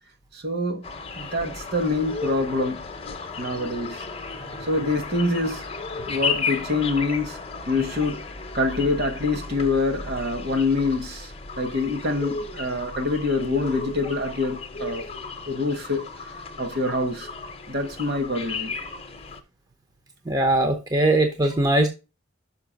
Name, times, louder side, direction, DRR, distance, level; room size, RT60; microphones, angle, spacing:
voice 1, 0.3-0.8 1.2-2.9 3.4-4.0 4.6-5.6 6.1-7.4 7.7-8.2 8.5-15.0 15.4-16.0 16.6-17.3 17.7-18.7, left 2 dB, 50° right, 1.4 m, -25 dB
sound 1, 0.8-19.4, left 4 dB, 30° left, 0.8 m, -34 dB
voice 2, 20.3-21.9, right 2 dB, 20° right, 0.7 m, -20 dB
5.9 x 5.3 x 5.2 m
head